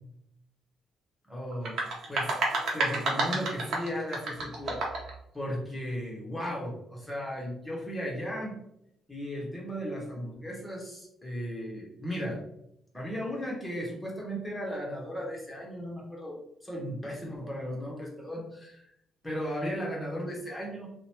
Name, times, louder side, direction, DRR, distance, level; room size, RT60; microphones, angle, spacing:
voice 1, 1.2-1.8 2.1-2.4 2.7-4.8 5.3-8.6 9.1-12.4 12.9-18.9 19.2-20.9, equal, 5° left, -3 dB, 1.0 m, -36 dB
sound 1, 1.5-5.1, right 2 dB, 65° right, 0.8 m, -30 dB
2.8 x 2.1 x 2.9 m, 0.79 s
cardioid pair, 90°, 0 cm